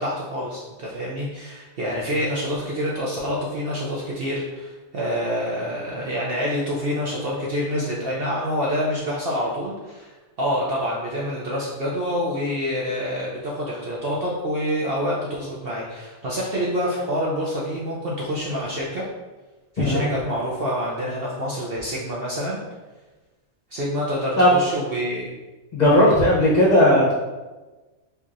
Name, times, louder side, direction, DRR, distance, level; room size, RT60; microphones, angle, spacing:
voice 1, 0.0-19.0 19.7-22.6 23.7-25.3 25.8-26.1, equal, 60° right, -4 dB, 0.7 m, -27 dB
voice 2, 25.7-27.1, left 1 dB, 35° left, -6 dB, 0.8 m, -16 dB
4.5 x 2.8 x 2.5 m, 1.2 s
omnidirectional pair, 1.4 m